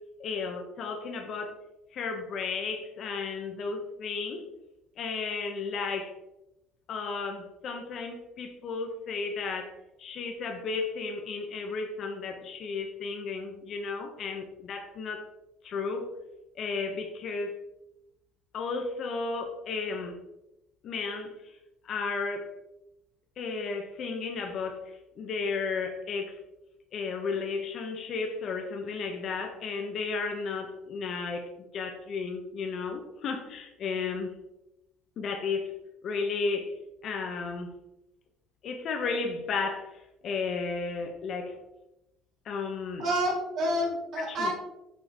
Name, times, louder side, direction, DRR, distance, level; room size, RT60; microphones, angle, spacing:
voice 1, 0.2-1.6 1.9-4.4 5.0-6.1 6.9-9.7 10.0-15.3 15.6-16.1 16.5-17.6 18.5-20.2 20.8-21.3 21.8-22.5 23.4-26.4 26.9-34.4 35.2-35.7 36.0-36.7 37.0-37.7 38.6-39.9 40.2-41.6 42.4-43.1 44.2-44.5, left 4 dB, 40° left, 5 dB, 1.1 m, -33 dB
voice 2, 43.0-44.5, equal, 45° right, -2 dB, 2.5 m, -28 dB
7.5 x 6.6 x 3.1 m, 0.91 s
cardioid pair, 155°, 0 cm